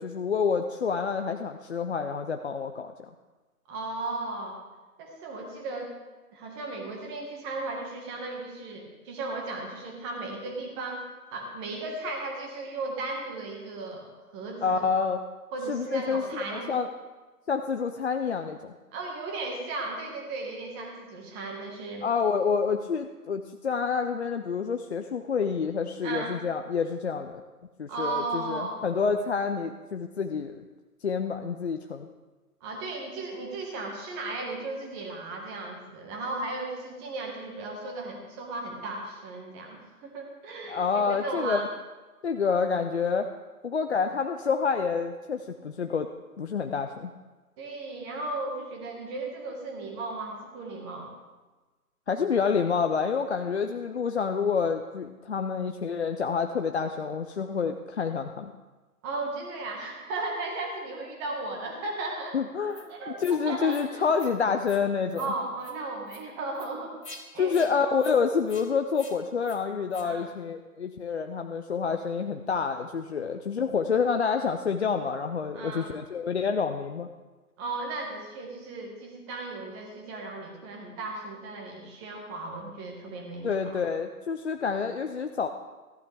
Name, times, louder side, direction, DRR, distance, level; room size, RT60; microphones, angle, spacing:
voice 1, 0.0-3.1 14.6-15.2 15.7-16.9 17.5-18.7 22.0-27.4 27.8-30.6 31.0-32.1 40.7-41.7 42.2-43.3 43.6-46.1 46.4-47.1 52.1-58.5 62.3-65.3 67.4-77.1 83.4-85.5, left 5 dB, 45° left, 6 dB, 0.6 m, -28 dB
voice 2, 3.7-4.6 5.0-6.0 6.3-14.9 15.5-16.7 18.9-22.1 26.0-26.4 27.9-28.8 32.6-41.7 47.6-51.1 59.0-62.4 62.9-64.3 65.2-66.9 67.3-67.6 70.0-70.3 75.5-75.9 77.6-83.8, right 2 dB, 15° right, 1 dB, 1.6 m, -36 dB
sound 1, 62.7-62.9 63.2-63.4 63.7-63.9 64.1-64.3 64.6-64.8 65.1-65.3 65.6-65.7 66.1-66.2 66.5-66.7 67.0-67.2 67.5-67.7 68.0-68.2 68.5-68.7 68.9-69.2 69.4-69.6 69.9-70.1, left 2 dB, 90° left, 1.9 m, -47 dB
14.5 x 11.5 x 3.4 m, 1.2 s
figure-of-eight pair, 140°, 46 cm